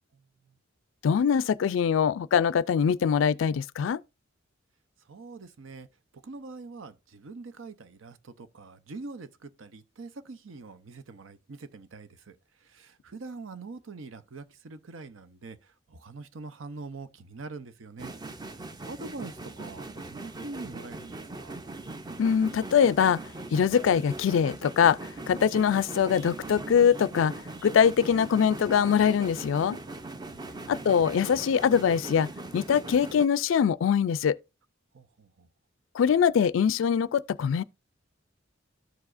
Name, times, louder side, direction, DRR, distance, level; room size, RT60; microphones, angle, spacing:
voice 1, 0.1-0.5 5.1-5.9 6.1-12.4 12.6-18.1 18.6-21.6 30.3-30.9 34.9-35.5, right 3 dB, 85° right, 0.7 m, -44 dB
voice 2, 1.0-4.0 22.2-23.2 23.5-25.0 25.3-27.3 27.6-29.8 30.7-32.3 32.5-34.4 35.9-37.6, left 7 dB, 75° left, 0.3 m, -23 dB
sound 1, 18.0-33.3, right 2 dB, 20° right, 0.5 m, -40 dB
13.5 x 4.8 x 2.5 m
head